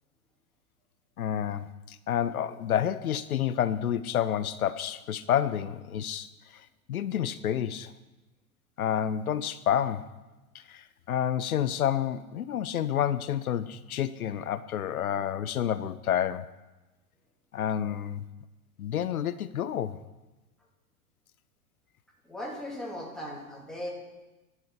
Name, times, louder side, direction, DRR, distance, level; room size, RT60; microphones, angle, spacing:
voice 1, 1.2-7.9 8.8-10.1 10.5-16.5 17.5-18.2 18.8-20.0, left 10 dB, 70° left, 15 dB, 0.6 m, -29 dB
voice 2, 22.3-23.9, left 1 dB, ahead, -3 dB, 2.4 m, -38 dB
11.0 x 5.6 x 6.8 m, 1.1 s
figure-of-eight pair, 105°, 45 cm